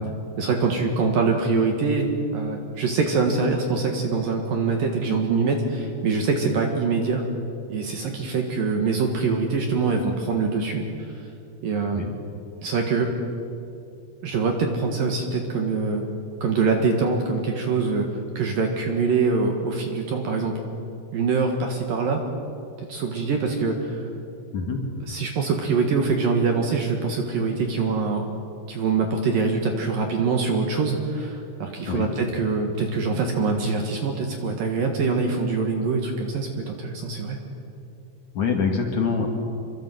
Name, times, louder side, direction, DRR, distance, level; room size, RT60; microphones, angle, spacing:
voice 1, 0.4-2.1 2.3-7.2 7.7-10.8 11.6-12.0 12.6-13.1 14.2-16.0 16.4-18.1 18.4-20.5 21.1-22.2 22.9-24.1 25.1-28.2 28.7-37.4, right 4 dB, 60° right, 3 dB, 2.7 m, -24 dB
voice 2, 38.3-39.3, left 5 dB, 50° left, 2 dB, 2.7 m, -24 dB
27.0 x 23.5 x 7.8 m, 2.7 s
omnidirectional pair, 5.8 m